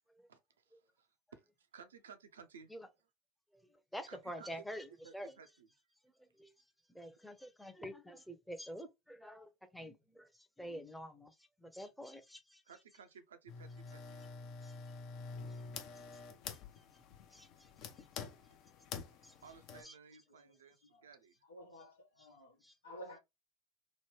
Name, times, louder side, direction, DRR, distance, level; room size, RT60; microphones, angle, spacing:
voice 1, 0.3-2.7 4.1-4.7 5.0-5.7 12.7-14.2 19.4-21.4, right 6 dB, 85° right, 0.5 m, -57 dB
voice 2, 3.9-5.3 6.2-6.5 6.9-12.6 14.6-14.7 15.5-15.6 16.5-16.6 16.9-17.0 17.3-17.7 18.0-18.2 19.2-19.3 19.8-20.0 22.6-22.7, equal, 5° left, 0.6 m, -48 dB
sound 1, 13.5-19.8, left 5 dB, 55° left, 0.7 m, -48 dB
voice 3, 20.3-21.0 21.4-23.2, equal, 85° left, 1.0 m, -54 dB
3.0 x 2.1 x 3.1 m
hypercardioid pair, 80°, 0 cm